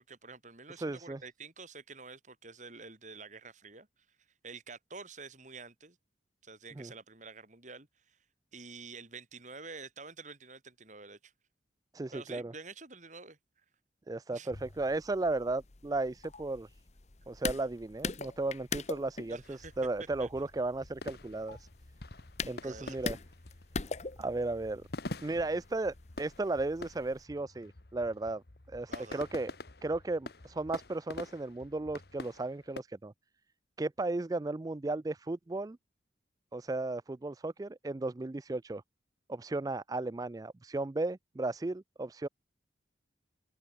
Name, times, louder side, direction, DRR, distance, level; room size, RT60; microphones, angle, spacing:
voice 1, 0.0-3.9 4.4-6.0 6.4-8.2 8.5-11.3 12.1-13.4 14.3-14.6 19.3-19.7 20.2-20.3 22.6-23.0 28.9-29.2, right 4 dB, 40° right, 3.7 m, -48 dB
voice 2, 0.7-1.2 6.8-6.9 11.9-12.5 14.1-16.7 17.3-21.7 22.4-23.2 24.2-24.8 25.2-28.4 28.7-29.5 29.8-33.1 33.8-35.8 36.5-38.8 39.3-42.3, right 2 dB, 20° right, 0.3 m, -35 dB
sound 1, 14.5-27.2, left 4 dB, 35° left, 1.0 m, -43 dB
sound 2, 19.4-32.8, left 2 dB, 55° left, 1.4 m, -47 dB
open air
head